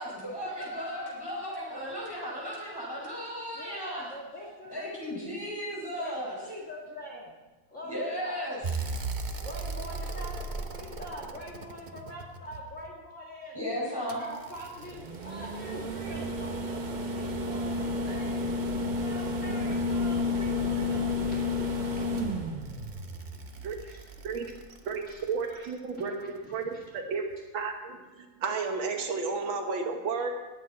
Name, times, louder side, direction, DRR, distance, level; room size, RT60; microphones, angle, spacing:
voice 1, 0.0-4.1 4.7-6.4 7.8-9.0 13.5-14.2, equal, 10° left, -5 dB, 5.2 m, -35 dB
voice 2, 0.6-1.1 1.4-2.4 3.5-5.4 6.0-7.3 7.7-8.5 9.3-13.6 13.8-18.4 19.0-21.4 21.7-22.1 22.5-22.6 23.1-24.0 25.1-25.2 25.5-25.7 26.0-26.1 26.4-26.6 26.9-27.0, equal, 40° left, -4 dB, 2.4 m, -44 dB
sound 1, 8.6-12.8 14.1-25.3 26.8-26.9, left 1 dB, 50° right, 0.5 m, -32 dB
voice 3, 25.3-26.1 26.5-27.2 27.5-30.3, right 5 dB, 85° right, 4 dB, 2.0 m, -32 dB
19.5 x 8.6 x 4.2 m, 1.2 s
omnidirectional pair, 2.1 m